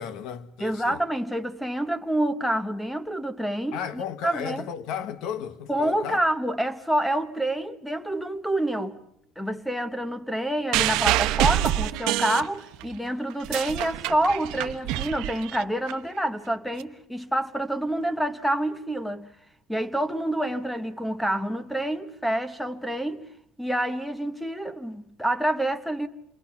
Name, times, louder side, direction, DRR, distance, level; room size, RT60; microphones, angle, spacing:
voice 1, 0.0-1.0 3.7-6.2, left 8 dB, 60° left, 1.2 m, -34 dB
voice 2, 0.6-4.7 5.7-9.0 9.4-19.3 19.7-23.2 23.6-26.1, right 1 dB, ahead, 0.9 m, -27 dB
sound 1, 10.7-12.9 13.3-15.9 16.8-16.9, right 14 dB, 75° right, 0.9 m, -26 dB
28.0 x 22.5 x 5.8 m
cardioid pair, 180°, 0 cm